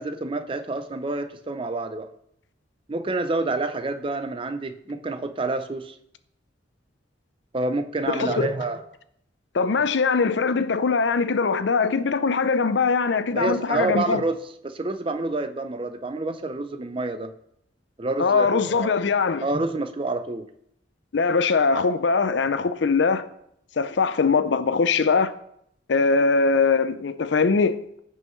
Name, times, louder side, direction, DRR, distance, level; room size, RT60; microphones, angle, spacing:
voice 1, 0.0-2.1 2.9-5.9 7.5-8.8 13.3-14.4 14.6-17.3 18.0-18.9 19.4-20.5, right 2 dB, 30° right, 0.5 m, -28 dB
voice 2, 8.1-8.5 9.5-14.2 18.2-19.5 21.1-23.3 23.8-25.3 25.9-28.0, left 4 dB, 65° left, 0.5 m, -21 dB
15.0 x 5.5 x 3.1 m
head